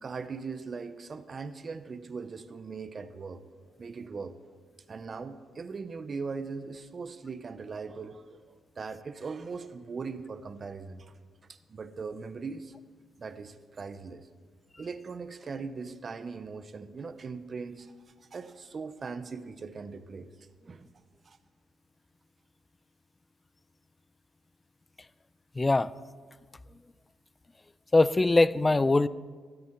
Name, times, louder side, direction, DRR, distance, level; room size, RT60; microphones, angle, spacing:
voice 1, 0.0-3.4 3.8-4.3 4.9-11.1 11.5-12.7 13.2-14.3 14.8-17.9 18.2-20.3 20.6-20.9 21.2-21.4, right 4 dB, 40° right, 11 dB, 0.6 m, -40 dB
voice 2, 25.6-25.9 27.9-29.1, left 2 dB, 20° left, 17 dB, 0.3 m, -22 dB
13.0 x 10.5 x 4.4 m, 1.5 s
cardioid pair, 90°, 0 cm